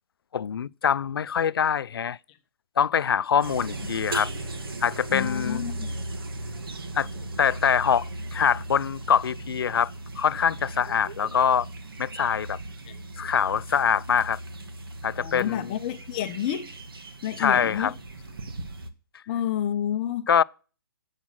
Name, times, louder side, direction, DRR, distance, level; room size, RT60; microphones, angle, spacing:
voice 1, 0.3-2.2 2.8-4.3 4.8-5.7 6.9-7.1 7.4-11.7 12.0-12.6 13.2-14.4 15.0-15.7 17.4-17.9 20.3-20.4, left 7 dB, 80° left, 0.4 m, -24 dB
sound 1, 3.4-18.9, right 2 dB, 75° right, 1.3 m, -37 dB
voice 2, 5.1-5.9 12.9-13.0 15.2-16.7 17.2-17.9 19.3-20.4, left 10 dB, 25° left, 0.7 m, -30 dB
7.3 x 6.2 x 7.3 m
hypercardioid pair, 160°, 12 cm